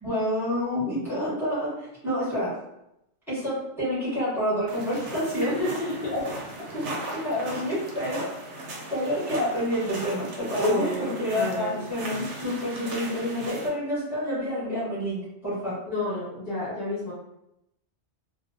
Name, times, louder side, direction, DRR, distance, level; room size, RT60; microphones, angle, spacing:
voice 1, 0.0-1.7 2.0-2.5 3.3-5.5 6.1-6.2 6.7-8.3 8.9-15.8, equal, ahead, -9 dB, 1.0 m, -28 dB
sound 1, 4.7-13.7, right 1 dB, 85° right, 0.9 m, -38 dB
voice 2, 5.4-6.2 10.6-11.8 13.5-13.6 15.9-17.1, left 2 dB, 55° left, -7 dB, 0.9 m, -30 dB
2.4 x 2.1 x 2.6 m, 0.84 s
omnidirectional pair, 1.2 m